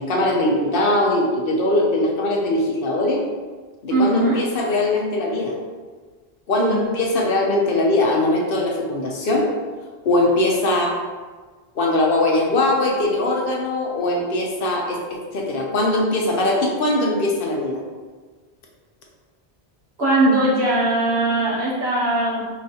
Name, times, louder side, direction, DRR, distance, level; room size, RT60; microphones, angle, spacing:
voice 1, 0.0-3.2 3.8-5.5 6.5-9.5 10.0-11.0 11.7-17.8, left 1 dB, 65° left, -1 dB, 0.8 m, -21 dB
voice 2, 3.9-4.4 6.6-6.9 20.0-22.5, right 2 dB, 80° right, -8 dB, 1.6 m, -20 dB
4.8 x 2.4 x 2.7 m, 1.4 s
omnidirectional pair, 1.0 m